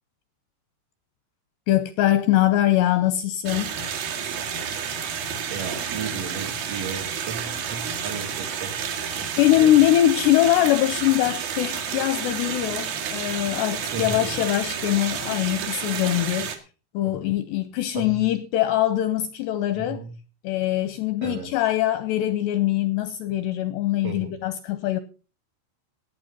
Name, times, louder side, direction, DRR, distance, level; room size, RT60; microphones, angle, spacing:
voice 1, 1.7-3.8 9.4-16.5 16.9-20.0 20.4-25.0, left 13 dB, 80° left, 2.5 m, -22 dB
sound 1, 3.5-16.6, right 7 dB, 60° right, 3.0 m, -30 dB
voice 2, 5.5-8.7 9.2-9.7 13.9-14.3 17.0-17.2 17.9-18.3 19.7-20.1 21.2-21.5 24.0-24.3, right 5 dB, 75° right, 1.3 m, -35 dB
17.5 x 8.4 x 5.3 m
omnidirectional pair, 5.6 m